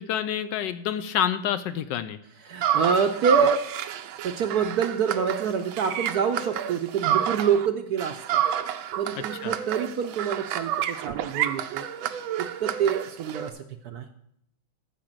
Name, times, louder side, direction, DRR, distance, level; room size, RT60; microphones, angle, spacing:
voice 1, 0.0-2.2 9.4-9.5, left 10 dB, 75° left, 12 dB, 1.1 m, -28 dB
voice 2, 2.4-3.6 4.2-8.2 9.0-11.9 12.4-14.1, right 6 dB, 70° right, 7 dB, 0.9 m, -26 dB
sound 1, 2.6-7.7 8.0-13.5, right 10 dB, 90° right, 1.5 m, -29 dB
13.0 x 5.0 x 7.4 m, 0.74 s
omnidirectional pair, 2.2 m